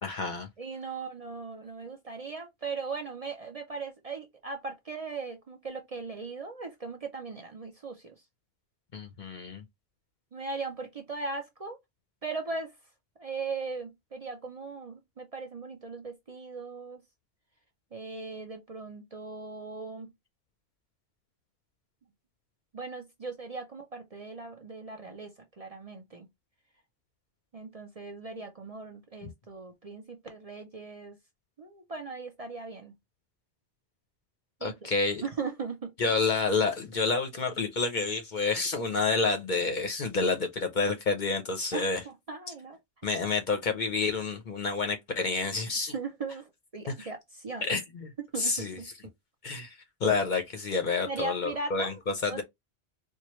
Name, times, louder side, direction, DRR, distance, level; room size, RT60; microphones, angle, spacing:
voice 1, 0.0-0.5 8.9-9.6 34.6-35.2 36.0-42.0 43.0-45.9 47.6-48.1 48.4-48.8 49.4-52.4, left 4 dB, 50° left, 0.7 m, -29 dB
voice 2, 0.6-8.2 10.3-11.8 12.2-12.8 13.2-17.0 17.9-20.1 22.7-26.3 27.5-31.2 31.6-32.9 34.6-34.9 35.2-35.9 41.7-42.8 45.9-47.7 48.2-48.9 51.0-52.0 52.3-52.4, right 4 dB, 40° right, 0.6 m, -38 dB
4.5 x 2.2 x 3.0 m
omnidirectional pair, 1.1 m